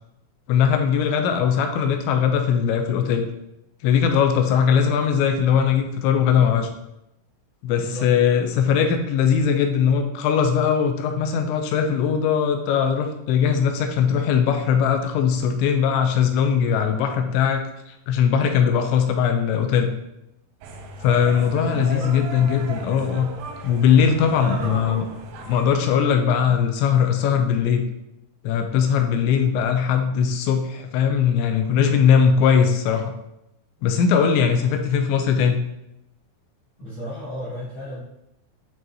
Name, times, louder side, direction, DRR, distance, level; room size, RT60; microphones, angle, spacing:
voice 1, 0.5-3.3 3.8-6.7 7.6-19.9 21.0-23.3 23.6-25.0 25.4-27.8 28.4-33.1 33.8-35.6, left 7 dB, 85° left, 5 dB, 2.9 m, -20 dB
voice 2, 7.7-8.1 21.6-22.2 24.2-25.2 26.5-26.6 36.8-38.0, equal, 60° left, -9 dB, 1.2 m, -33 dB
sound 1, 20.6-25.7, right 4 dB, 80° right, 2.2 m, -36 dB
9.1 x 3.9 x 2.8 m, 0.84 s
omnidirectional pair, 5.3 m